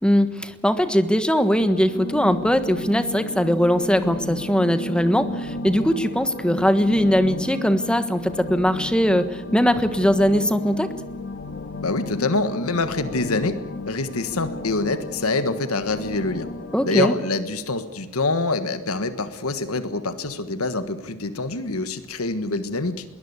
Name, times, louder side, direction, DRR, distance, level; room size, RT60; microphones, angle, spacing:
voice 1, 0.0-10.9 16.7-17.1, equal, 5° left, 11 dB, 1.4 m, -20 dB
sound 1, 1.6-17.1, left 2 dB, 55° left, 1.9 m, -34 dB
voice 2, 11.8-13.6 13.9-16.5 16.8-23.0, left 3 dB, 80° left, 11 dB, 1.5 m, -25 dB
22.0 x 20.0 x 8.2 m, 1.1 s
head